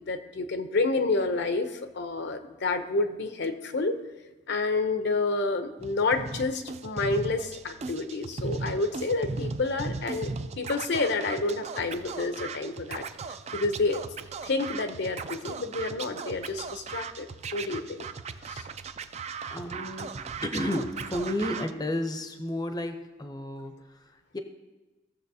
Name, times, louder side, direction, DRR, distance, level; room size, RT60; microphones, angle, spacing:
voice 1, 0.0-4.0 4.5-10.3 10.6-13.0 13.5-14.0 14.4-18.0 18.4-18.6, left 3 dB, 60° left, 8 dB, 0.7 m, -29 dB
Scratching (performance technique), 5.8-21.7, right 4 dB, 35° right, 0.4 m, -37 dB
voice 2, 19.5-20.1 20.4-24.4, left 1 dB, 20° left, 6 dB, 0.6 m, -32 dB
16.5 x 6.9 x 2.7 m, 1.1 s
head